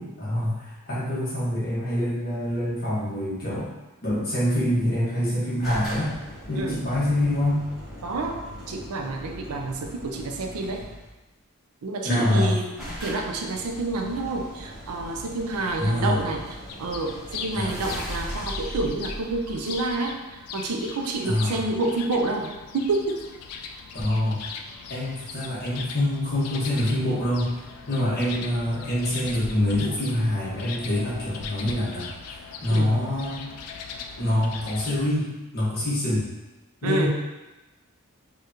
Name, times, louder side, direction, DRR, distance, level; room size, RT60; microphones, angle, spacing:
voice 1, 0.0-3.7 4.0-6.2 6.5-7.6 12.0-12.5 15.8-16.2 17.5-17.7 21.2-21.6 23.9-24.4 24.9-33.4 34.2-36.3 36.8-37.1, left 1 dB, 45° left, -7 dB, 1.2 m, -25 dB
sound 1, 5.6-11.1 12.1-12.2 12.4-12.5 12.8-20.2, equal, ahead, 1.5 m, -39 dB
voice 2, 8.0-10.8 11.8-12.7 13.0-23.2 32.7-32.9 36.8-37.1, right 2 dB, 85° right, 3 dB, 0.5 m, -28 dB
sound 2, 16.7-35.2, left 5 dB, 90° left, 0.4 m, -40 dB
5.0 x 2.4 x 2.7 m, 1.1 s
head